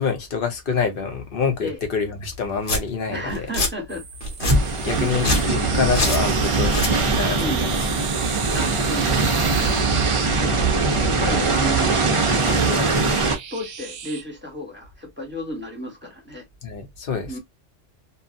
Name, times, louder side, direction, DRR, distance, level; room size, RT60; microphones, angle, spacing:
voice 1, 0.0-3.5 4.8-7.8 16.6-17.4, left 5 dB, 55° left, 1.0 m, -26 dB
Domestic sounds home sounds, 2.2-2.3 2.6-2.8 3.3-3.7 4.2-4.6 5.1-5.5 5.9-6.2 6.6-6.9, left 2 dB, 75° left, 1.5 m, -24 dB
voice 2, 3.1-4.0 4.5-5.3 7.4-7.6 8.5-9.8 10.4-12.0 12.4-13.0 13.5-16.4 17.3-17.4, equal, 10° right, 1.2 m, -32 dB
sound 1, 3.9-11.2 12.1-14.2, right 7 dB, 65° right, 0.8 m, -35 dB
sound 2, 4.4-13.4, right 3 dB, 35° right, 0.6 m, -21 dB
2.7 x 2.4 x 2.5 m
omnidirectional pair, 1.2 m